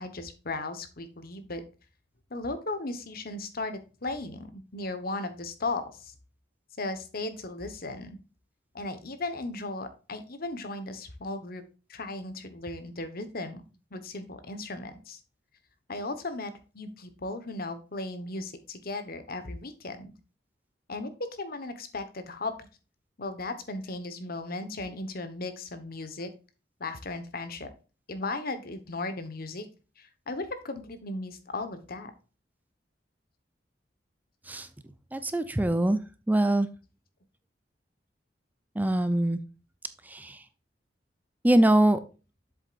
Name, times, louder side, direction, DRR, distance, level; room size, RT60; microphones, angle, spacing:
voice 1, 0.0-1.6 2.3-6.1 6.8-8.2 8.7-11.6 11.9-13.6 13.9-15.2 15.9-20.1 20.9-21.1 21.4-22.7 23.2-26.3 26.8-27.7 28.1-29.7 30.0-32.1, left 2 dB, 55° left, 10 dB, 1.2 m, -36 dB
voice 2, 35.1-36.0 36.3-36.7 38.8-39.4 40.1-40.4 41.4-42.0, right 1 dB, 10° right, 11 dB, 0.5 m, -23 dB
7.7 x 7.5 x 2.5 m, 0.33 s
head